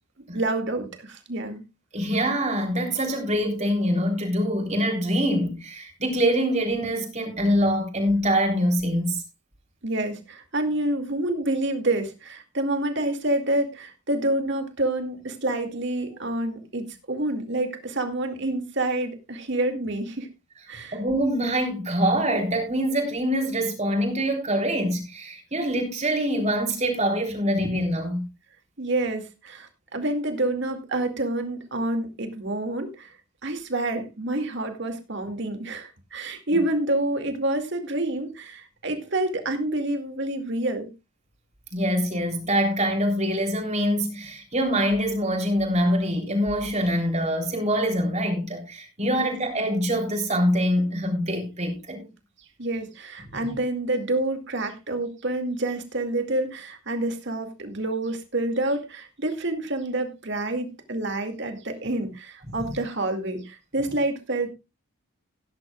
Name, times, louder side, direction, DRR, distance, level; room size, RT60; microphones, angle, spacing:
voice 1, 0.3-1.6 9.8-20.3 20.7-21.0 28.8-33.1 33.4-40.9 49.0-49.3 52.6-64.5, right 2 dB, 55° right, 2.3 m, -28 dB
voice 2, 1.9-9.2 20.9-28.3 41.7-52.1, equal, 30° right, 3.4 m, -24 dB
17.5 x 10.5 x 2.4 m
head